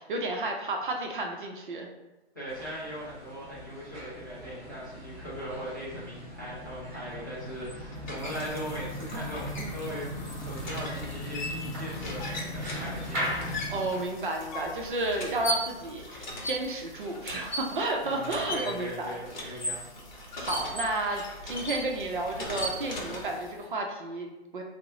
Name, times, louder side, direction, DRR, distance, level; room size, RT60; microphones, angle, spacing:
voice 1, 0.1-1.9 13.7-19.5 20.4-24.6, right 2 dB, 50° right, 2 dB, 0.5 m, -32 dB
voice 2, 2.3-13.7 18.0-19.9, equal, 20° left, -10 dB, 0.4 m, -39 dB
sound 1, 2.5-13.9, equal, 15° right, 1.1 m, -38 dB
sound 2, 7.4-23.6, equal, 40° left, 0.8 m, -38 dB
2.9 x 2.0 x 3.6 m, 1.0 s
hypercardioid pair, 160°, 34 cm